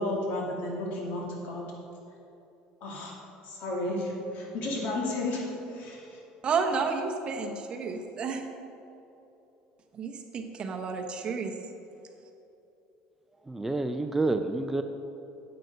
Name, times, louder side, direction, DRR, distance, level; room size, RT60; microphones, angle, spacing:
voice 1, 0.0-1.6 2.8-3.1 3.4-6.2, left 1 dB, 65° left, -2 dB, 2.4 m, -33 dB
voice 2, 6.4-8.4 9.9-11.5, right 5 dB, 35° right, 3 dB, 1.0 m, -31 dB
voice 3, 13.4-14.8, right 2 dB, 10° right, 6 dB, 0.4 m, -28 dB
9.4 x 7.9 x 5.3 m, 2.9 s
cardioid pair, 130°, 3 cm